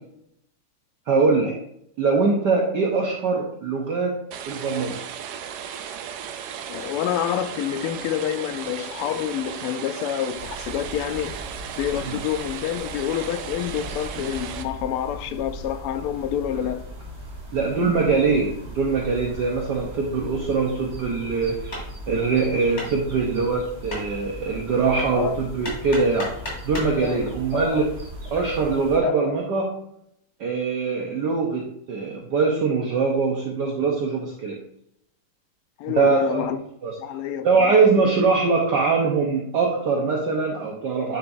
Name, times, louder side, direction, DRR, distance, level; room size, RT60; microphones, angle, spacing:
voice 1, 1.1-1.5 2.0-4.2 4.5-4.9 12.0-12.2 17.5-26.3 26.6-27.9 28.3-29.7 30.4-34.6 35.9-36.5 36.8-36.9 37.4-41.2, right 4 dB, 60° right, 1.3 m, -22 dB
sound 1, 4.3-14.6, right 8 dB, 85° right, 0.9 m, -36 dB
voice 2, 6.7-11.4 11.8-16.8 25.1-25.3 27.0-27.9 28.3-28.4 29.0-29.2 35.8-36.6 37.0-38.0, left 10 dB, 85° left, 1.6 m, -28 dB
sound 2, 10.4-29.0, equal, 35° right, 1.6 m, -39 dB
Hammer, 21.7-27.0, left 1 dB, 30° left, 3.1 m, -37 dB
9.7 x 4.9 x 2.6 m
omnidirectional pair, 2.4 m